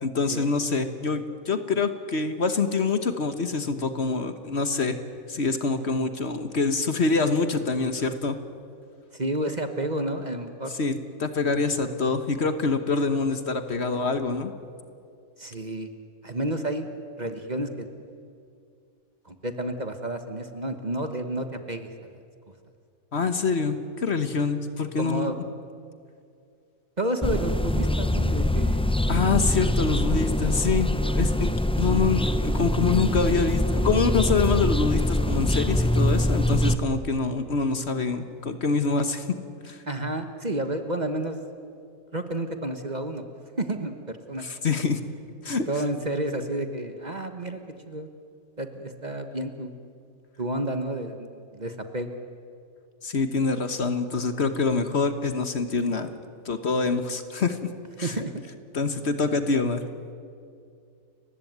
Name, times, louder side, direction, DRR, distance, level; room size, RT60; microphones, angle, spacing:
voice 1, 0.0-5.0 5.3-8.4 10.8-14.5 23.1-25.3 29.1-30.9 31.1-39.4 39.6-39.8 44.4-45.0 45.4-45.7 53.0-56.1 56.4-57.7 58.0-58.1 58.7-59.8, left 4 dB, 50° left, 9 dB, 1.4 m, -25 dB
voice 2, 9.1-10.7 15.4-15.9 16.2-16.9 17.2-17.9 19.2-22.1 25.0-25.4 27.0-28.9 39.8-41.4 42.1-43.2 43.6-44.4 45.7-47.6 47.9-48.1 48.6-49.7 50.4-52.2 58.0-58.3, right 1 dB, 30° right, 7 dB, 1.4 m, -30 dB
sound 1, 27.2-36.8, left 1 dB, 5° left, 0.5 m, -24 dB
30.0 x 15.5 x 9.4 m, 2.4 s
omnidirectional pair, 1.5 m